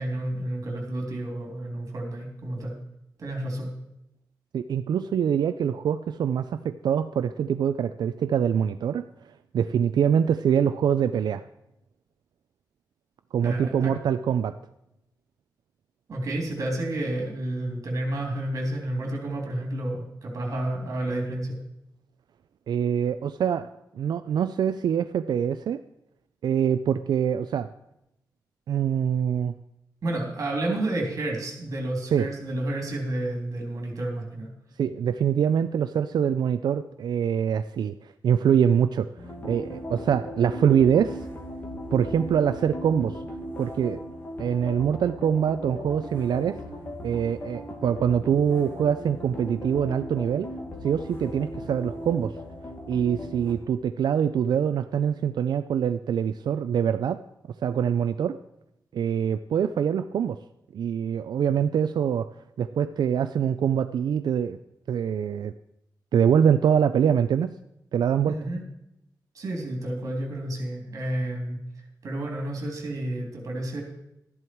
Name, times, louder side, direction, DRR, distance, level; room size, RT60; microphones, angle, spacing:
voice 1, 0.0-2.7 3.2-3.7 13.4-13.9 16.1-21.6 30.0-34.5 68.3-68.6 69.4-71.6 72.0-73.8, right 1 dB, 50° right, 0 dB, 3.4 m, -30 dB
voice 2, 4.5-9.1 9.5-11.4 13.3-14.5 22.7-23.7 24.0-25.8 26.4-27.7 28.7-29.6 32.1-32.3 34.8-39.1 39.4-41.2 41.9-43.2 43.6-44.0 44.4-46.6 47.0-50.5 50.8-52.3 52.9-57.2 57.6-58.4 58.9-60.4 60.7-62.3 62.6-64.6 64.9-65.5 66.1-67.5 67.9-68.4, right 8 dB, 75° right, 11 dB, 0.4 m, -24 dB
sound 1, 39.2-53.5, equal, 30° left, 2.2 m, -38 dB
13.5 x 11.0 x 4.6 m, 0.83 s
wide cardioid pair, 175°, 7 cm